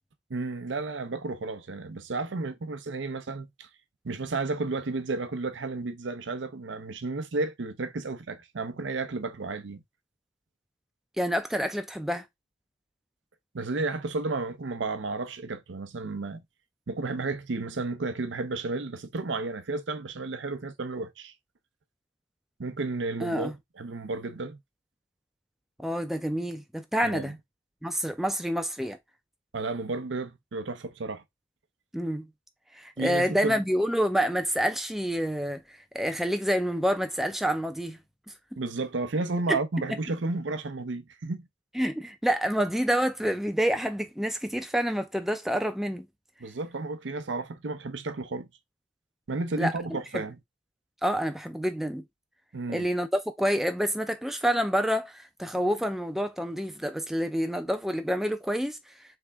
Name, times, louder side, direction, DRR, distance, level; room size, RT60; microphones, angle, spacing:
voice 1, 0.3-3.7 4.0-9.8 13.5-16.4 16.9-21.3 22.6-24.6 27.0-27.3 29.5-31.2 33.0-33.5 38.6-41.4 46.4-48.5 49.3-50.4 52.5-52.9, right 3 dB, 80° right, 0.6 m, -32 dB
voice 2, 11.2-12.3 23.2-23.5 25.8-27.3 27.8-29.0 31.9-32.3 32.7-38.0 39.5-39.6 41.8-46.1 49.6-50.2 51.0-52.0 52.7-58.9, equal, ahead, 0.4 m, -28 dB
3.6 x 3.4 x 3.4 m
head